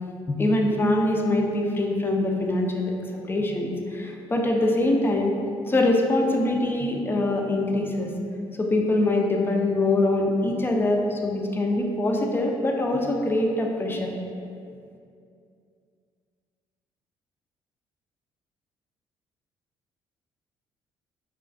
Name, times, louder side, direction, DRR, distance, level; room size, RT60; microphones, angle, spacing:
voice 1, 0.3-2.9 3.3-5.4 5.7-8.1 8.6-14.1, left 2 dB, 20° left, 1 dB, 0.3 m, -23 dB
2.4 x 2.3 x 2.4 m, 2.4 s
supercardioid pair, 60°, 11 cm